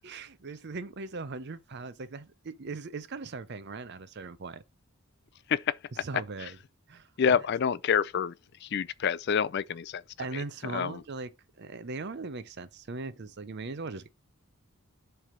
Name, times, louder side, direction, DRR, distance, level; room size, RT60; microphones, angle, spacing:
voice 1, 0.0-4.6 6.0-6.6 6.9-7.1 10.2-11.3 11.6-14.1, right 3 dB, 50° right, 0.6 m, -39 dB
voice 2, 7.2-8.3 8.6-10.0 10.3-11.0, left 7 dB, 50° left, 0.4 m, -28 dB
7.4 x 3.4 x 5.0 m
head